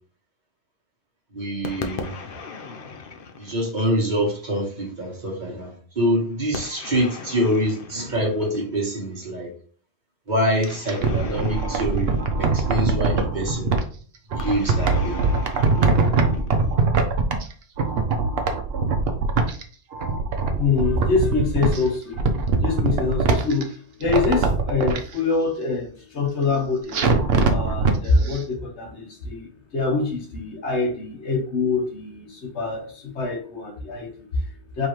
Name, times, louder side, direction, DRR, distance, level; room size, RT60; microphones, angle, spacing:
voice 1, 1.3-2.2 3.4-9.5 10.3-12.1 12.4-13.7 14.3-15.2 15.8-16.0, equal, 45° right, -1 dB, 1.5 m, -25 dB
sound 1, 1.6-4.3 6.5-8.9 10.5-13.0 14.4-16.8, left 5 dB, 60° left, 0.8 m, -38 dB
sound 2, 10.7-13.8 14.3-17.5 17.8-19.6 19.9-21.8 22.1-23.6 24.0-25.0 26.9-28.0 28.3-28.4, right 4 dB, 65° right, 0.9 m, -22 dB
voice 2, 20.6-22.3 22.6-27.1 27.5-34.9, left 4 dB, 85° left, 1 dB, 1.6 m, -25 dB
5.3 x 3.3 x 3.0 m, 0.43 s
omnidirectional pair, 1.1 m